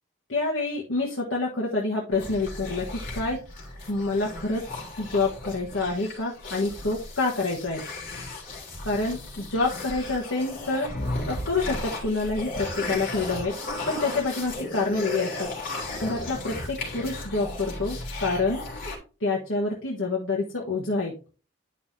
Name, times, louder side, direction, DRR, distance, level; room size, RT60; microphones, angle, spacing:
voice 1, 0.3-3.4 3.9-7.8 8.8-10.9 11.3-13.5 13.9-15.5 16.0-18.6 19.2-21.2, left 3 dB, 80° left, -3 dB, 1.4 m, -27 dB
sound 1, 2.1-19.0, left 2 dB, 45° left, 3.3 m, -35 dB
10.5 x 5.6 x 2.7 m, 0.34 s
head